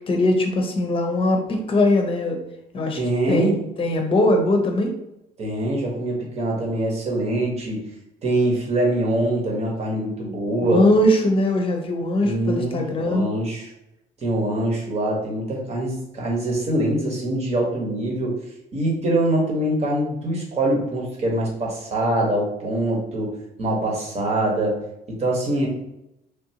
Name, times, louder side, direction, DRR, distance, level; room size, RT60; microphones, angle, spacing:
voice 1, 0.1-2.4 2.7-3.0 3.3-5.0 10.6-13.3, left 1 dB, 30° left, 3 dB, 0.7 m, -21 dB
voice 2, 3.0-3.6 5.4-7.8 8.2-10.8 12.2-13.7 14.2-18.4 18.7-23.3 23.6-24.8 25.1-25.7, right 1 dB, 40° right, -1 dB, 1.1 m, -24 dB
3.4 x 2.6 x 2.8 m, 0.87 s
cardioid pair, 110°, 17 cm